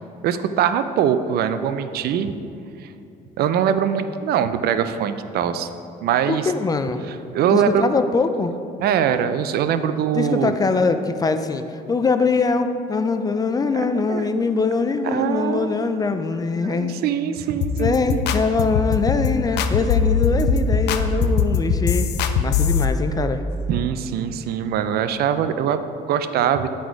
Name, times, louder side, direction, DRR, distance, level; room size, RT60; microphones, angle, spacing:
voice 1, 0.2-2.3 2.8-2.9 3.4-5.7 6.0-6.5 7.3-7.8 8.8-10.5 13.9-14.3 15.0-15.9 16.7-18.6 23.7-26.7, right 9 dB, 65° right, 10 dB, 0.4 m, -22 dB
voice 2, 6.3-7.0 7.5-8.5 10.1-17.0 17.8-22.1 22.4-23.4, left 4 dB, 20° left, 9 dB, 0.4 m, -22 dB
sound 1, 17.6-22.8, left 5 dB, 80° left, 0.5 m, -21 dB
9.5 x 4.2 x 4.6 m, 2.6 s
cardioid pair, 110°, 17 cm